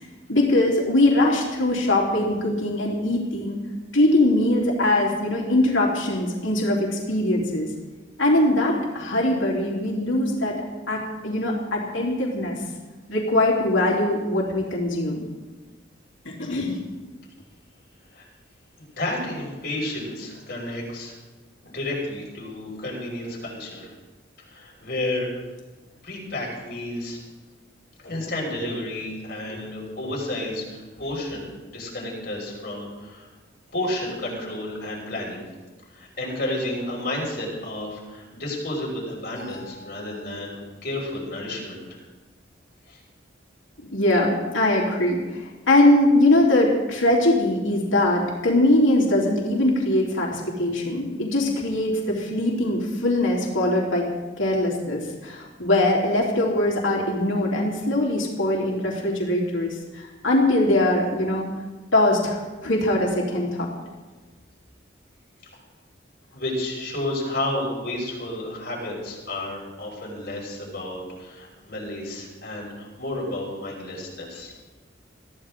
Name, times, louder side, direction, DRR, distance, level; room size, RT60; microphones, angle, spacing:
voice 1, 0.3-3.6 3.9-7.7 8.2-10.5 10.9-12.6 13.1-15.2 16.3-16.8 29.5-29.6 30.0-30.1 39.5-39.6 43.9-54.0 54.4-61.5 61.9-63.7, left 1 dB, 85° left, -2 dB, 3.5 m, -22 dB
voice 2, 19.0-21.2 21.6-23.9 24.4-25.3 26.0-27.2 28.0-31.5 31.7-33.3 33.7-35.4 35.9-42.0 42.9-43.0 66.3-74.5, left 1 dB, 50° left, -3 dB, 5.8 m, -31 dB
23.0 x 15.0 x 3.8 m, 1.2 s
head